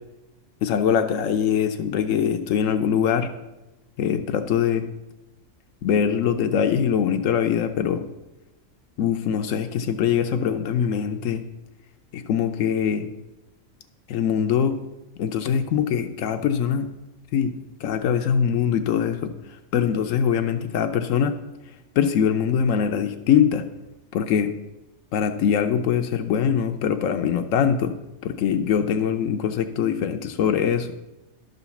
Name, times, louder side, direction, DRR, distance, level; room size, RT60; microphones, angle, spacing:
voice 1, 0.6-3.3 4.0-4.9 5.8-8.0 9.0-11.4 12.1-13.1 14.1-14.8 15.2-16.9 17.3-17.5 17.8-21.4 22.0-23.6 24.1-24.5 25.1-27.9 28.2-30.9, left 8 dB, 85° left, 7 dB, 1.0 m, -22 dB
12.0 x 4.0 x 6.9 m, 1.0 s
omnidirectional pair, 1.3 m